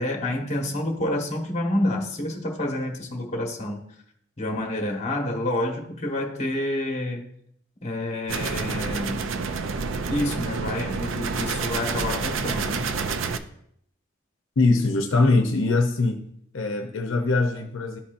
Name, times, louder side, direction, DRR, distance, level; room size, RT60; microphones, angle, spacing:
voice 1, 0.0-3.8 4.4-7.3 7.8-9.2 10.1-12.9, left 1 dB, 35° left, 1 dB, 1.2 m, -28 dB
sound 1, 8.3-13.4, right 4 dB, 70° right, 0.5 m, -28 dB
voice 2, 14.6-16.2 16.5-18.0, left 3 dB, 75° left, 3 dB, 0.7 m, -22 dB
12.0 x 4.1 x 2.6 m, 0.70 s
head